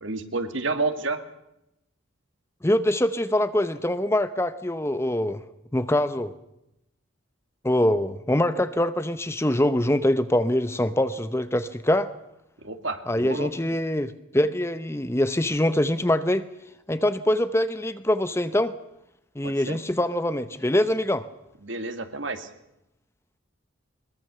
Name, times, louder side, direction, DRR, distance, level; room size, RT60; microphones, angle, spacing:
voice 1, 0.0-1.2 12.6-13.5 19.4-19.8 21.6-22.5, right 3 dB, 70° right, 8 dB, 2.1 m, -30 dB
voice 2, 2.6-5.4 5.7-6.3 7.6-12.1 13.1-16.4 16.9-18.7 19.4-21.2, left 1 dB, 15° left, 12 dB, 0.8 m, -24 dB
23.0 x 21.5 x 6.8 m, 0.86 s
head